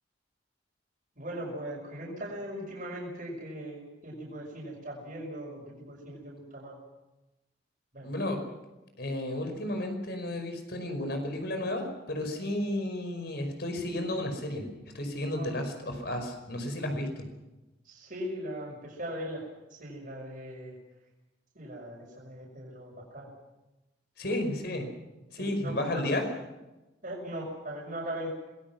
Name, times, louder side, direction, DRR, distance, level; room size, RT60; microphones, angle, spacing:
voice 1, 1.2-6.8 7.9-8.1 15.3-15.5 17.8-20.7 21.5-23.3 24.3-24.4 25.3-26.2 27.0-28.3, equal, 45° right, -4 dB, 6.0 m, -39 dB
voice 2, 8.0-8.4 9.0-14.7 14.9-17.2 24.2-24.9 25.3-26.2, left 1 dB, 60° left, 5 dB, 5.4 m, -32 dB
26.5 x 20.5 x 6.1 m, 1.0 s
head